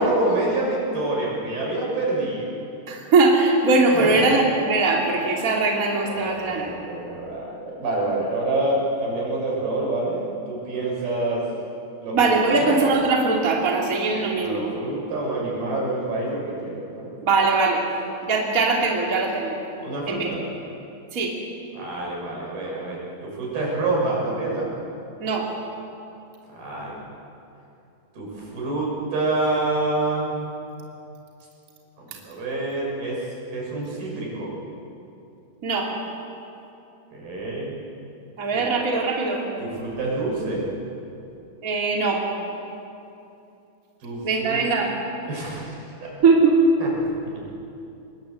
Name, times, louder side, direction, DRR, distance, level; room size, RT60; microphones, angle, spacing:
voice 1, 0.0-2.5 3.9-4.3 6.0-11.4 12.0-12.8 14.1-17.2 19.8-20.4 21.7-24.7 26.5-27.0 28.1-30.4 32.0-34.5 37.1-37.8 39.6-40.6 44.0-44.6 45.3-46.1 46.8-47.5, right 2 dB, 80° right, -3 dB, 8.3 m, -27 dB
voice 2, 2.9-6.7 12.1-14.7 17.2-17.8 18.3-19.6 20.1-20.3 21.1-21.3 25.2-25.5 35.6-35.9 38.4-39.5 41.6-42.2 44.2-44.9 46.2-46.6, right 3 dB, 25° right, -1 dB, 3.0 m, -21 dB
26.5 x 21.0 x 7.9 m, 2.8 s
omnidirectional pair, 4.3 m